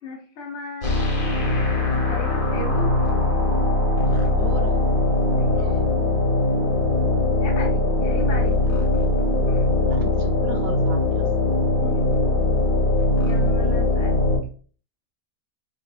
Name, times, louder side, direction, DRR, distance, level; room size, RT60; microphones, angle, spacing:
voice 1, 0.0-2.9 5.4-5.8 7.4-9.0 9.5-9.7 11.8-12.0 13.2-14.2, left 3 dB, 60° left, 0 dB, 1.2 m, -36 dB
sound 1, 0.8-14.4, left 2 dB, 80° left, 1.6 m, -21 dB
voice 2, 4.1-4.9 5.5-5.8 9.9-11.3, right 5 dB, 80° right, 3 dB, 0.4 m, -37 dB
3.8 x 3.4 x 2.3 m, 0.41 s
omnidirectional pair, 1.5 m